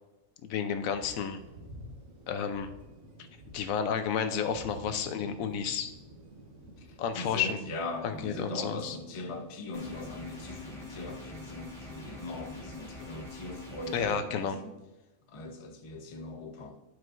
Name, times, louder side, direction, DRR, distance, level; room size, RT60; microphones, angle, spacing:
voice 1, 0.4-1.4 2.3-2.7 3.5-5.9 7.0-7.6 8.0-9.0 13.9-14.6, left 7 dB, 85° left, 9 dB, 1.1 m, -31 dB
Thunder, 0.8-12.4, right 1 dB, 85° right, 1.4 m, -51 dB
voice 2, 6.8-14.7 15.3-16.8, left 2 dB, 35° left, 4 dB, 0.6 m, -40 dB
sound 1, 9.7-14.1, left 2 dB, ahead, 1.3 m, -45 dB
11.5 x 4.5 x 2.5 m, 1.0 s
omnidirectional pair, 1.4 m